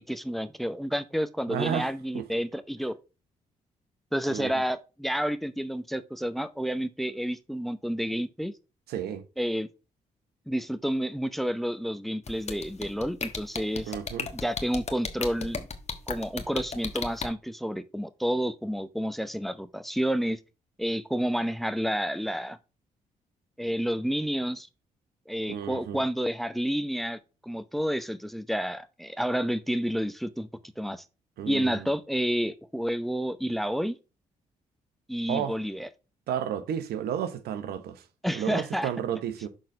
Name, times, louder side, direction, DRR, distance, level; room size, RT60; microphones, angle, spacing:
voice 1, 0.0-3.0 4.1-8.5 9.4-9.7 10.5-13.9 14.3-15.7 16.1-20.4 20.8-22.6 23.6-24.7 25.3-30.5 30.8-31.0 31.5-34.0 35.1-35.9 38.2-38.9, equal, ahead, 0.8 m, -30 dB
voice 2, 1.5-1.9 2.1-2.2 4.3-4.5 8.9-9.2 13.9-14.3 25.5-26.0 31.4-31.9 35.3-35.5 36.3-38.0 38.3-39.5, right 9 dB, 75° right, 0.9 m, -32 dB
sound 1, 12.3-17.3, left 5 dB, 40° left, 1.4 m, -33 dB
6.5 x 3.9 x 5.2 m
supercardioid pair, 55°, 16 cm